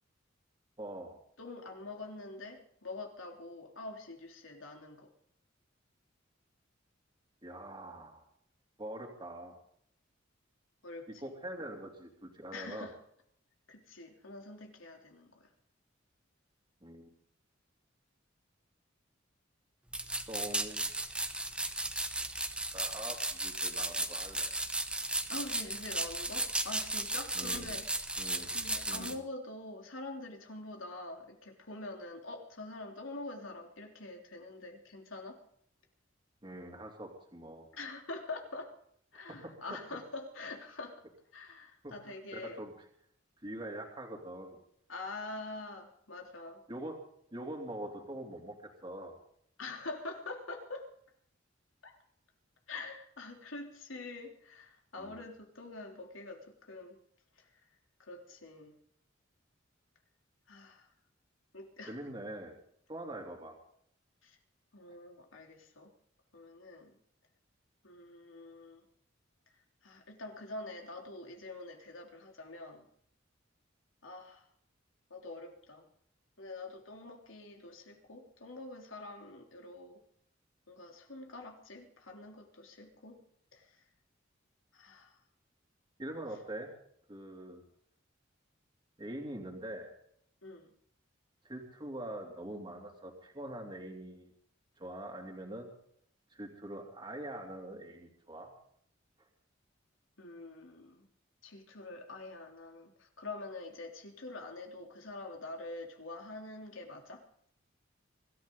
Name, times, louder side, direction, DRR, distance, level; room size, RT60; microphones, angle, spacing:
voice 1, 0.8-1.2 7.4-8.2 8.8-9.5 11.2-12.9 16.8-17.1 20.3-20.9 22.7-24.6 27.3-27.7 28.2-28.6 28.9-29.2 36.4-37.7 39.1-39.5 41.8-41.9 42.3-42.7 43.4-44.6 46.7-47.0 47.3-49.1 55.0-55.2 61.9-62.6 62.9-63.5 86.0-86.7 87.1-87.6 89.0-89.9 91.4-94.3 94.8-95.7 96.3-98.5, right 1 dB, 25° right, 0 dB, 2.9 m, -43 dB
voice 2, 1.4-5.1 10.8-11.3 12.5-13.0 13.7-15.5 25.3-27.9 28.5-35.4 37.7-38.7 39.1-41.0 41.3-42.6 44.9-46.6 49.6-50.9 51.8-52.0 52.7-57.0 57.4-57.6 58.0-58.8 60.5-60.9 61.5-61.9 64.2-64.4 64.7-65.9 66.3-67.0 67.8-68.8 69.8-72.9 74.0-74.5 75.1-75.9 76.4-80.0 80.7-83.2 83.5-83.8 84.7-85.2 90.4-90.7 100.2-101.1 101.4-107.2, left 2 dB, 85° left, 2 dB, 3.3 m, -45 dB
sound 1, 19.9-29.1, right 2 dB, 5° right, 1.0 m, -35 dB
24.5 x 14.0 x 3.9 m, 0.66 s
head